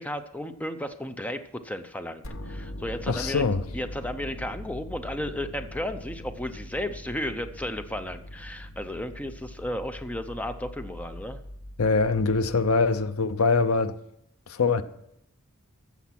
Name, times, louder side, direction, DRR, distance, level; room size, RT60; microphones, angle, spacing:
voice 1, 0.0-3.4 3.7-11.4, left 1 dB, 5° left, 0.5 m, -34 dB
sound 1, 2.2-13.2, left 1 dB, 65° left, 1.0 m, -41 dB
voice 2, 3.1-3.6 11.8-13.9 14.5-14.8, left 4 dB, 80° left, 0.7 m, -23 dB
14.5 x 7.2 x 5.9 m
head